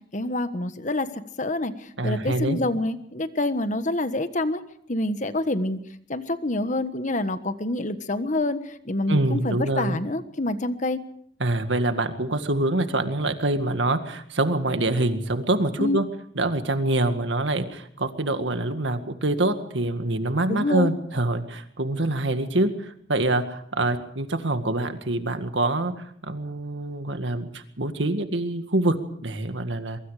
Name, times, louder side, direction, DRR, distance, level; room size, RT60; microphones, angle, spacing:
voice 1, 0.1-1.1 1.4-1.7 2.0-4.6 4.9-5.8 6.1-8.6 8.9-11.0 15.8-16.0 20.5-20.9, left 2 dB, 40° left, 10 dB, 1.4 m, -26 dB
voice 2, 2.0-2.6 9.1-10.0 11.4-16.1 16.4-30.0, right 2 dB, 80° right, 8 dB, 1.9 m, -25 dB
23.5 x 23.0 x 5.0 m, 0.65 s
head